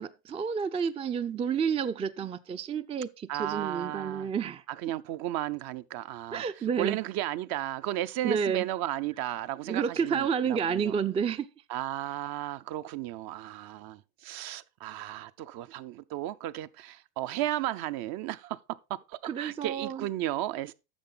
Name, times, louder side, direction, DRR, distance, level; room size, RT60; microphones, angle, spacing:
voice 1, 0.0-4.6 6.3-7.0 8.2-8.7 9.7-11.5 19.2-20.1, right 7 dB, 15° right, 0.4 m, -30 dB
voice 2, 3.3-4.3 4.8-6.4 6.8-10.9 11.7-18.6 18.9-20.7, right 14 dB, 55° right, 0.7 m, -34 dB
10.0 x 6.8 x 3.8 m
supercardioid pair, 110°, 42 cm